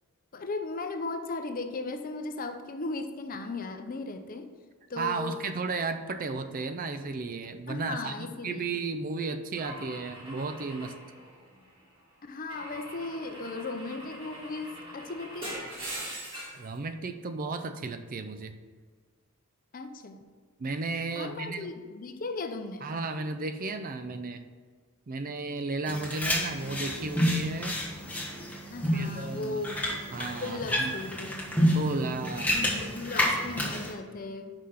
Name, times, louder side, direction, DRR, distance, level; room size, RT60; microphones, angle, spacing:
voice 1, 0.3-4.5 4.9-5.4 7.7-8.8 12.2-15.7 19.7-20.2 21.1-22.9 28.7-29.8 30.4-31.6 32.5-34.5, left 3 dB, 40° left, 7 dB, 0.6 m, -37 dB
voice 2, 5.0-10.9 16.5-18.6 20.6-21.7 22.8-24.4 25.1-27.8 28.9-29.6 30.1-31.0 31.7-32.5, right 3 dB, 40° right, 9 dB, 0.4 m, -34 dB
Car / Engine / Glass, 9.6-11.8 12.5-16.7, right 1 dB, 25° right, 2.0 m, -42 dB
sound 1, 25.9-33.9, equal, 5° left, 1.2 m, -29 dB
5.7 x 4.9 x 5.6 m, 1.5 s
head